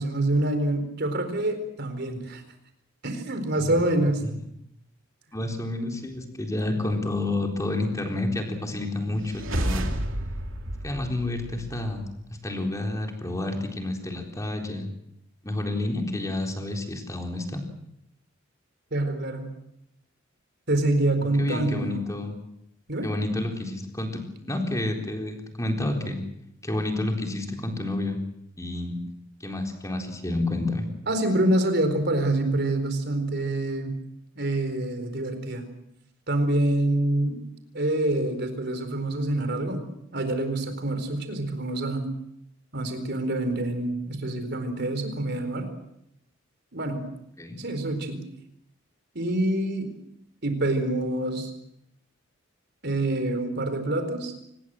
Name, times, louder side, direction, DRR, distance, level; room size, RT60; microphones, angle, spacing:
voice 1, 0.0-2.4 3.0-4.3 18.9-19.5 20.7-22.0 22.9-23.1 31.1-34.0 34.4-35.7 36.3-37.4 37.7-39.8 40.1-42.1 42.7-45.7 46.7-47.1 47.6-48.2 49.1-49.9 50.4-51.5 52.8-54.3, right 1 dB, 55° right, 8 dB, 4.3 m, -26 dB
voice 2, 5.3-9.9 10.8-12.0 12.4-14.9 15.4-17.6 21.4-22.4 23.0-26.2 26.6-28.2 28.6-29.0 29.4-30.9 47.4-47.6, left 2 dB, 15° left, 3 dB, 4.0 m, -29 dB
sound 1, 9.2-12.0, right 1 dB, 70° right, 2.8 m, -31 dB
24.5 x 20.5 x 7.7 m, 0.78 s
head